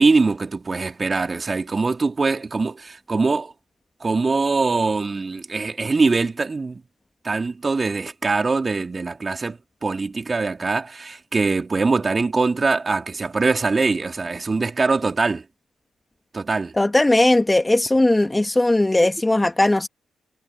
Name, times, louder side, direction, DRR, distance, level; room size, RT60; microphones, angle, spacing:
voice 1, 0.0-3.5 4.0-6.8 7.2-15.4 16.3-16.8 19.0-19.1, right 3 dB, 35° right, 3.8 m, -22 dB
voice 2, 16.8-19.9, left 2 dB, 20° left, 2.6 m, -18 dB
hypercardioid pair, 40°, 0 cm